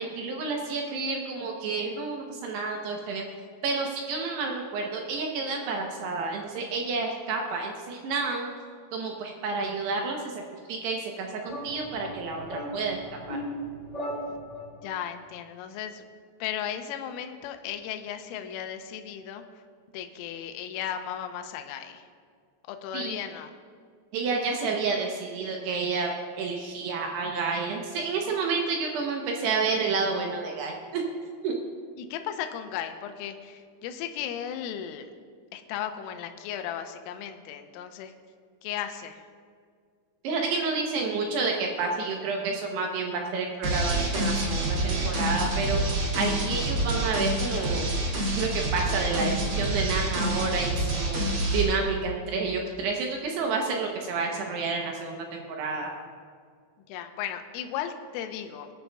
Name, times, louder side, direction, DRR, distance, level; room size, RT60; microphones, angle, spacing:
voice 1, 0.0-3.2 3.6-8.5 8.9-10.4 10.7-13.0 13.3-13.4 22.9-23.2 24.1-26.1 26.4-31.0 31.4-31.5 40.2-47.9 48.3-51.2 51.5-55.9, right 4 dB, 80° right, 1 dB, 2.5 m, -30 dB
sound 1, 11.5-14.9, equal, 35° left, 2.1 m, -37 dB
voice 2, 14.8-16.1 16.4-19.4 19.9-22.1 22.7-23.5 32.0-35.1 35.5-38.1 38.6-39.2 56.9-58.7, left 9 dB, 85° left, 7 dB, 3.3 m, -35 dB
sound 2, 43.6-51.6, right 1 dB, 55° right, 1.4 m, -27 dB
20.5 x 10.5 x 2.3 m, 2.1 s
omnidirectional pair, 5.8 m